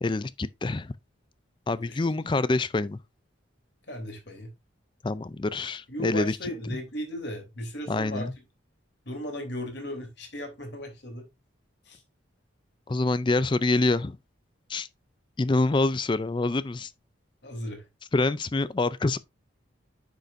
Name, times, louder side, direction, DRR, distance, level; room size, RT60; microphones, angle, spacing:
voice 1, 0.0-0.9 1.7-3.0 5.0-6.4 7.9-8.3 12.9-14.2 14.7-14.9 15.4-16.9 18.1-19.2, left 2 dB, 25° left, 0.4 m, -26 dB
voice 2, 3.9-4.5 5.9-8.3 9.0-11.3 11.8-12.0 17.4-17.8, equal, 55° left, 3.2 m, -36 dB
9.5 x 6.6 x 2.6 m
head